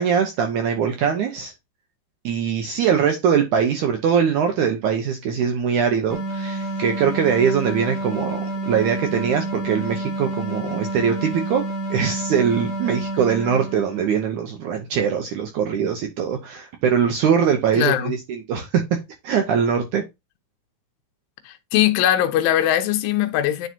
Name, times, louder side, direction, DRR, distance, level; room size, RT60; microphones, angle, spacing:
voice 1, 0.0-1.5 2.2-11.7 11.9-19.0 19.2-20.0, right 7 dB, 80° right, 1.8 m, -22 dB
sound 1, 6.1-14.2, right 2 dB, 35° left, 1.9 m, -29 dB
voice 2, 17.8-18.1 21.5-23.7, left 12 dB, 75° left, 2.5 m, -20 dB
9.2 x 4.9 x 2.7 m
omnidirectional pair, 4.5 m